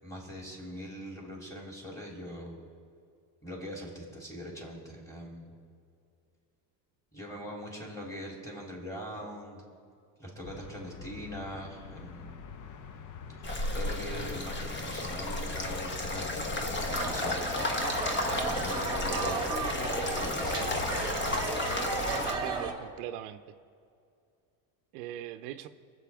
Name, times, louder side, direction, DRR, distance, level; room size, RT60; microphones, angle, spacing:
voice 1, 0.0-2.6 3.4-5.5 7.1-9.7 10.2-12.3 13.3-17.4 18.4-19.4 20.2-20.9, equal, 5° left, -2 dB, 3.3 m, -42 dB
sound 1, 10.4-22.5, left 6 dB, 40° left, 0.8 m, -46 dB
sound 2, 13.4-22.3, left 2 dB, 25° left, 1.1 m, -33 dB
sound 3, 16.9-22.7, right 4 dB, 10° right, 1.5 m, -34 dB
voice 2, 22.2-23.4 24.9-25.7, right 12 dB, 90° right, 10 dB, 0.7 m, -40 dB
23.0 x 7.8 x 3.5 m, 2.3 s
cardioid pair, 125°, 46 cm